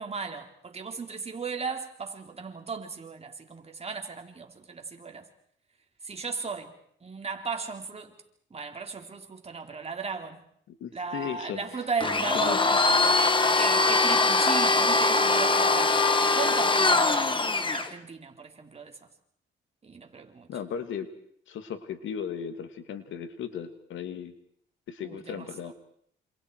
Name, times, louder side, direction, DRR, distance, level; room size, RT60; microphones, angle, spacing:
voice 1, 0.0-5.3 6.0-6.7 7.0-8.2 8.5-10.4 10.9-12.7 13.6-19.0 19.8-20.5 25.0-25.5, right 4 dB, 30° right, 3.7 m, -36 dB
voice 2, 10.7-11.8 12.3-12.8 20.5-21.1 21.5-24.3 24.9-25.7, left 8 dB, 75° left, 2.3 m, -36 dB
Domestic sounds home sounds, 12.0-17.9, left 3 dB, 25° left, 2.0 m, -22 dB
27.5 x 27.5 x 4.8 m
cardioid pair, 90°, 20 cm